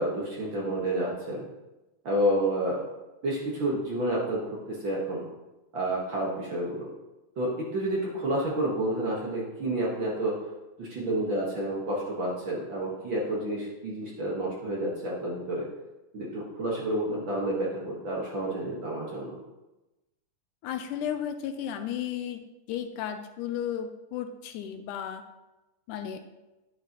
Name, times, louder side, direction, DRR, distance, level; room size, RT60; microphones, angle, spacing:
voice 1, 0.0-1.4 2.0-2.9 3.2-5.2 5.7-6.9 7.4-10.3 10.8-15.7 16.1-19.4, right 1 dB, 50° right, -4 dB, 1.6 m, -29 dB
voice 2, 20.6-25.2 25.9-26.2, left 9 dB, 80° left, 8 dB, 2.0 m, -34 dB
10.0 x 9.4 x 2.9 m, 1.0 s
omnidirectional pair, 3.7 m